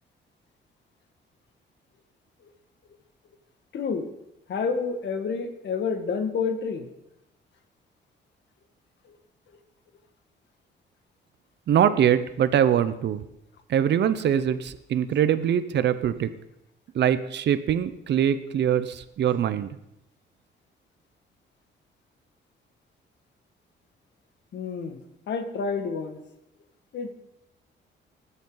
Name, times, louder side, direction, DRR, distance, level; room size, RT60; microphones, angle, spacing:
voice 1, 3.7-4.1 4.5-6.9 24.5-25.0 25.3-26.2 26.9-27.1, left 5 dB, 65° left, 5 dB, 1.9 m, -29 dB
voice 2, 11.7-13.2 13.7-16.3 16.9-19.7, right 9 dB, 60° right, 13 dB, 0.8 m, -23 dB
20.0 x 8.1 x 4.0 m, 0.84 s
cardioid pair, 90°, 20 cm